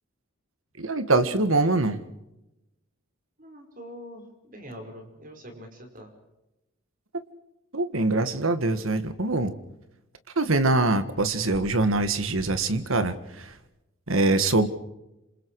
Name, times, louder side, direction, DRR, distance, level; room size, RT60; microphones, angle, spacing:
voice 1, 0.8-2.0 7.7-9.5 10.4-13.5 14.1-14.7, right 2 dB, 80° right, 11 dB, 1.8 m, -23 dB
voice 2, 3.4-6.1, equal, 40° right, 4 dB, 5.3 m, -44 dB
27.5 x 27.0 x 4.9 m, 0.94 s
head